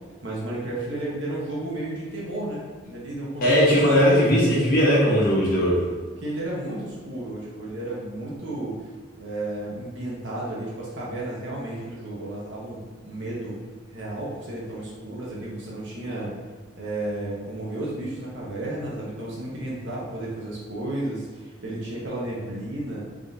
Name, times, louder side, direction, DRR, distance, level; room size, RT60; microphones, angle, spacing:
voice 1, 0.2-4.2 6.2-8.8 9.2-13.6 13.9-16.3 16.7-23.1, right 1 dB, 70° right, -6 dB, 0.9 m, -32 dB
voice 2, 3.4-5.8, equal, 45° left, -6 dB, 1.1 m, -19 dB
3.6 x 3.6 x 2.6 m, 1.5 s
head